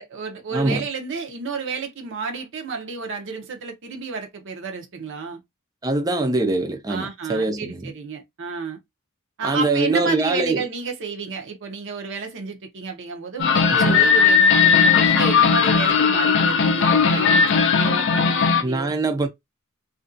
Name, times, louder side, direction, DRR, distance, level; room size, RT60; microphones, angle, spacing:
voice 1, 0.0-5.4 6.9-8.8 9.4-18.9, right 5 dB, 55° right, 0.7 m, -31 dB
voice 2, 0.5-0.8 5.8-7.9 9.4-10.6 13.7-14.1 18.6-19.3, right 2 dB, 15° right, 0.4 m, -23 dB
sound 1, 13.4-18.6, left 6 dB, 55° left, 0.4 m, -17 dB
2.5 x 2.3 x 2.5 m
head